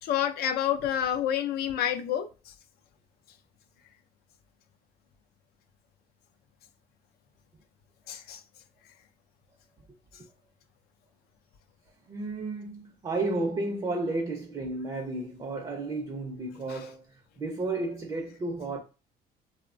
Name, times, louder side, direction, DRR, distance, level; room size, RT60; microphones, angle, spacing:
voice 1, 0.0-2.5 8.1-8.4 16.7-16.9, left 10 dB, 65° left, 0.4 m, -29 dB
voice 2, 12.1-17.1 17.4-18.8, right 2 dB, 25° right, 0.5 m, -32 dB
2.9 x 2.1 x 2.5 m
cardioid pair, 110°, 17 cm